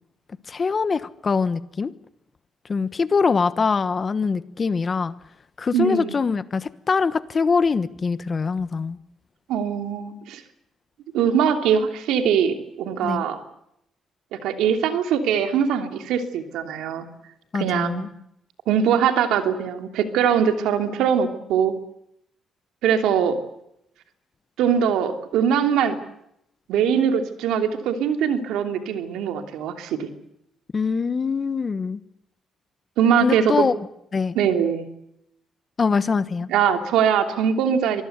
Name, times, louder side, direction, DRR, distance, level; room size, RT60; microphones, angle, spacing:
voice 1, 0.5-1.9 2.7-5.1 5.6-9.0 13.0-13.2 17.5-18.1 30.7-32.0 33.2-33.7 34.1-34.4 35.8-36.5, left 5 dB, 35° left, 1.2 m, -23 dB
voice 2, 5.7-6.2 9.5-10.4 11.1-13.4 14.4-17.1 17.5-18.0 18.7-21.7 22.8-23.4 24.6-26.0 26.7-30.1 33.0-33.7 34.3-34.9 36.5-38.0, right 8 dB, 90° right, 3.0 m, -22 dB
25.0 x 20.0 x 8.1 m
cardioid pair, 90°, 0 cm